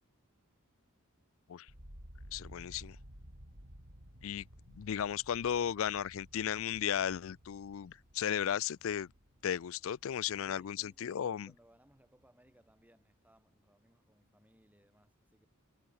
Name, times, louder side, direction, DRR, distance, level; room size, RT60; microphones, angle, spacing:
sound 1, 1.7-11.7 12.0-12.7, equal, 70° right, 7.7 m, -55 dB
voice 1, 2.3-3.0 4.2-4.4 4.7-9.1 9.4-11.5, left 9 dB, 65° left, 0.4 m, -35 dB
voice 2, 10.4-15.5, equal, 5° right, 5.7 m, -65 dB
head